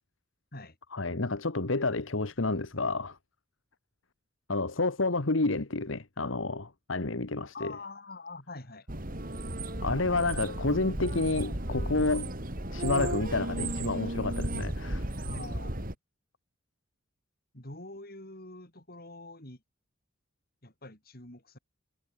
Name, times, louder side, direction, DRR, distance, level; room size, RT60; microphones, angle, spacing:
voice 1, 0.9-3.2 4.5-7.7 9.8-12.3 12.7-15.1, left 3 dB, 75° left, 1.5 m, -30 dB
voice 2, 7.5-8.9 15.2-15.9 17.5-19.6 20.6-21.6, left 2 dB, 50° left, 6.4 m, -45 dB
sound 1, 8.9-15.9, right 1 dB, 45° right, 3.6 m, -34 dB
head